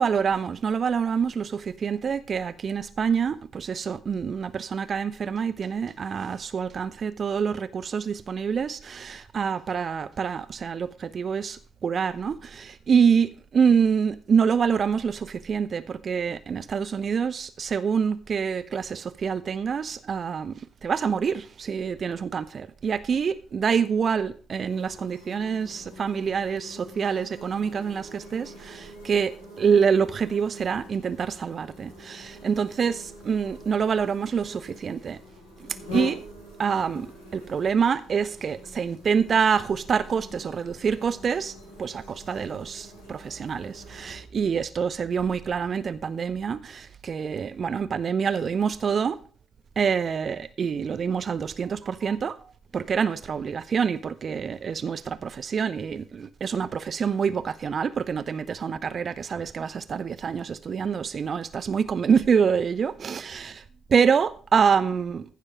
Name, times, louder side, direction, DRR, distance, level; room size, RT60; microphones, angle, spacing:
voice 1, 0.0-35.2 35.9-36.2 36.6-49.2 49.8-63.6 63.9-65.2, right 6 dB, 40° right, 0.7 m, -26 dB
sound 1, 24.7-44.2, left 2 dB, 80° left, 4.3 m, -44 dB
15.0 x 6.6 x 4.9 m
figure-of-eight pair, 45°, 0 cm